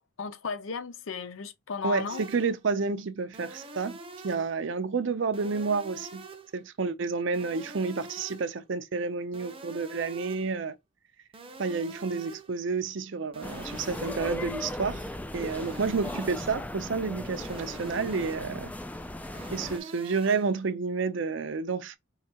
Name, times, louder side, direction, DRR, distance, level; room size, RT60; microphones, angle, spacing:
voice 1, 0.0-2.2, left 5 dB, 75° left, 0.6 m, -35 dB
voice 2, 1.8-4.0 4.2-6.2 6.5-10.7 11.6-15.1 15.3-18.7 19.5-22.0, right 4 dB, 65° right, 0.5 m, -30 dB
sound 1, 2.1-2.6 3.3-4.6 5.3-6.6 7.3-8.6 9.3-10.6 11.3-12.6 13.3-14.6 15.3-16.6 17.3-18.6 19.3-20.6, right 2 dB, 25° right, 0.7 m, -45 dB
sound 2, 13.4-19.8, left 1 dB, 10° left, 0.3 m, -37 dB
4.7 x 3.2 x 2.8 m
head